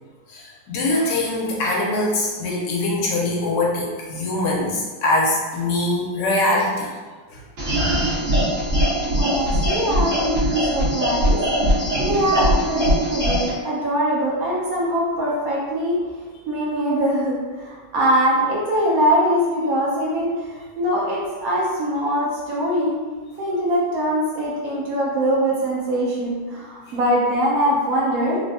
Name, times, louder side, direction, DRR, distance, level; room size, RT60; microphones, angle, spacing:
voice 1, 0.3-6.9 7.3-7.4, left 2 dB, 75° left, -3 dB, 1.2 m, -22 dB
sound 1, 7.6-13.5, equal, 45° right, 1.2 m, -21 dB
voice 2, 9.2-11.4 11.7-16.0 16.5-20.4 20.8-23.0 23.4-28.4, equal, 70° right, -5 dB, 0.8 m, -22 dB
3.3 x 2.1 x 2.6 m, 1.4 s
omnidirectional pair, 2.1 m